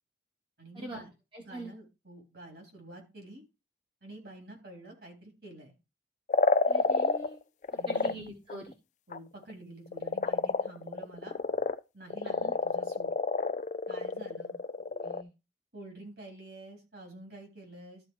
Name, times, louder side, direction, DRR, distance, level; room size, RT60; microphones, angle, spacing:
voice 1, 0.6-1.1 1.5-3.4 4.0-5.7 7.7-8.1 9.1-11.4 11.9-13.1 13.9-14.6 15.7-18.0, right 2 dB, 60° right, 2 dB, 3.5 m, -48 dB
voice 2, 1.3-1.7 6.7-7.4 7.9-8.7 12.2-12.5 14.8-15.3, right 1 dB, 25° right, 1 dB, 1.3 m, -43 dB
sound 1, 6.3-7.3 7.6-8.1 8.5-8.7 9.1-9.2 9.4-9.5 9.9-11.8 12.1-15.2, left 4 dB, 40° left, 0.3 m, -29 dB
12.5 x 4.2 x 4.6 m, 0.27 s
head